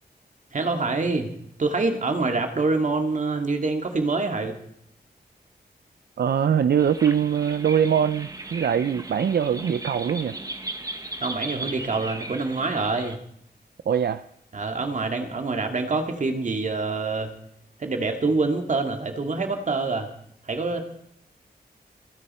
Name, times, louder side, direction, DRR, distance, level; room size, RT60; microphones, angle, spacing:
voice 1, 0.5-1.3 1.6-4.5 11.2-13.2 14.5-17.3 17.8-20.1 20.4-20.8, right 3 dB, 50° right, 5 dB, 2.3 m, -26 dB
voice 2, 6.2-10.4 13.9-14.2, right 8 dB, 75° right, 11 dB, 0.6 m, -22 dB
sound 1, 6.8-13.2, right 2 dB, 20° right, 1.2 m, -37 dB
29.0 x 10.0 x 4.4 m, 0.72 s
wide cardioid pair, 155°, 17 cm